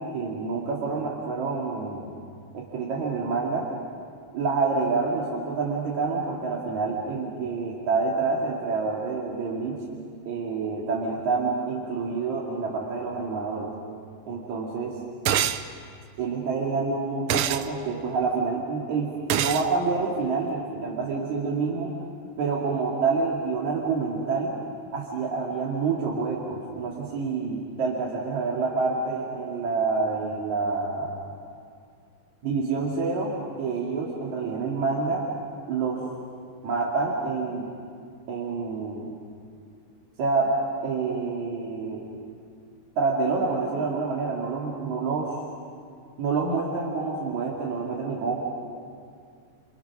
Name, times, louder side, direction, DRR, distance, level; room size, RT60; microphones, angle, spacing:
voice 1, 0.0-2.1 2.5-3.7 4.3-9.8 10.3-13.7 14.3-15.0 16.2-21.9 22.4-24.5 24.9-31.2 32.4-35.3 35.7-36.0 36.6-37.7 38.3-39.1 40.2-40.5 40.8-42.1 43.0-45.3 46.2-48.4, right 4 dB, 65° right, -3 dB, 3.7 m, -27 dB
sound 1, 15.3-15.6 17.3-17.7 19.3-19.7, right 10 dB, 85° right, 1.2 m, -24 dB
29.5 x 29.5 x 6.2 m, 2.3 s
omnidirectional pair, 3.7 m